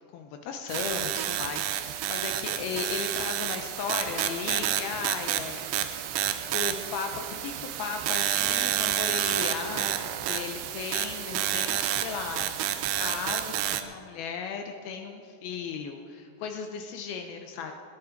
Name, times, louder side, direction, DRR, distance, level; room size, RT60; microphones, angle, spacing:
voice 1, 0.1-5.7 6.5-12.6 12.9-17.7, left 6 dB, 80° left, 4 dB, 2.2 m, -36 dB
sound 1, 0.7-13.8, right 12 dB, 85° right, 2.2 m, -30 dB
20.0 x 9.9 x 4.6 m, 2.4 s
omnidirectional pair, 5.3 m